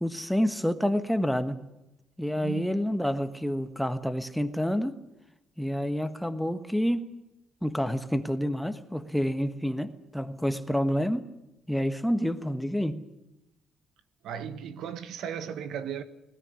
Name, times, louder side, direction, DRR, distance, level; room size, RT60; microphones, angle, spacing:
voice 1, 0.0-1.6 2.2-4.9 5.6-7.1 7.6-11.2 11.7-13.1, equal, ahead, 1.3 m, -28 dB
voice 2, 2.4-2.7 14.2-16.0, right 8 dB, 75° right, 1.5 m, -36 dB
20.0 x 17.5 x 9.7 m
cardioid pair, 105°, 0 cm